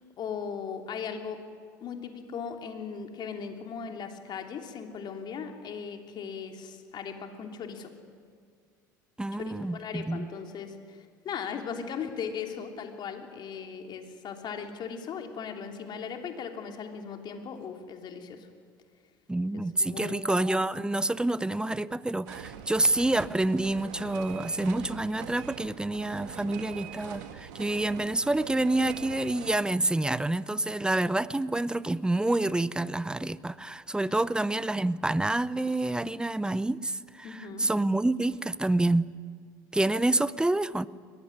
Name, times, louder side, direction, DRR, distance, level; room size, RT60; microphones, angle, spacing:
voice 1, 0.2-1.4 1.8-7.9 9.5-18.5 19.5-20.5 34.0-34.1 37.2-37.7, left 6 dB, 45° left, 3.2 m, -38 dB
voice 2, 9.2-10.3 19.3-39.1 39.7-40.9, right 2 dB, 10° right, 0.8 m, -28 dB
sound 1, 22.3-29.6, right 10 dB, 70° right, 1.7 m, -43 dB
22.5 x 19.5 x 10.0 m
hypercardioid pair, 70°, 10 cm